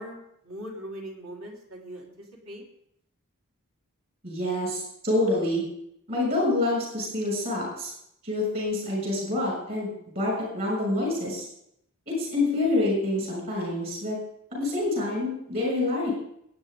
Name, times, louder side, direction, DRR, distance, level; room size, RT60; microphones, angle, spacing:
voice 1, 0.0-2.6, equal, 65° right, -2 dB, 3.9 m, -40 dB
voice 2, 4.2-5.6 6.1-7.9 8.2-11.5 12.1-14.2 14.5-16.1, left 2 dB, 45° right, -2 dB, 6.4 m, -27 dB
22.0 x 8.9 x 3.7 m, 0.73 s
head